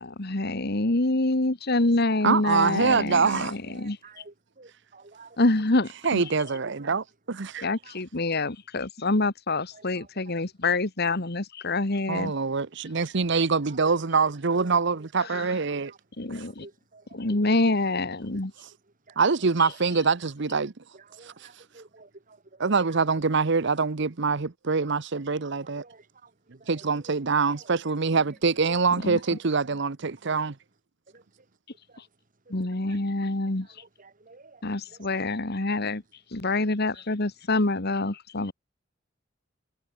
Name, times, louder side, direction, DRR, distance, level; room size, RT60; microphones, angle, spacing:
voice 1, 0.0-4.0 5.4-6.2 7.6-12.3 15.3-15.5 16.2-16.7 17.1-18.5 19.6-19.7 29.0-29.2 32.5-33.7 34.6-36.0 36.3-38.5, left 2 dB, 55° left, 1.8 m, -26 dB
voice 2, 2.2-3.5 6.0-7.6 12.1-15.9 16.3-16.4 19.2-20.7 22.6-25.8 26.7-30.5, right 4 dB, 65° right, 0.9 m, -24 dB
voice 3, 3.7-5.4 7.4-8.0 9.7-10.2 13.7-13.8 14.9-15.0 15.3-15.4 15.7-16.0 16.3-17.4 19.1-19.2 19.6-19.8 20.9-22.6 25.3-26.3 26.6-27.2 27.5-27.7 29.2-29.4 31.1-31.2 31.9-32.0 32.5-32.6 32.9-33.0 33.8-34.6 34.9-35.0, right 3 dB, 45° right, 2.5 m, -52 dB
head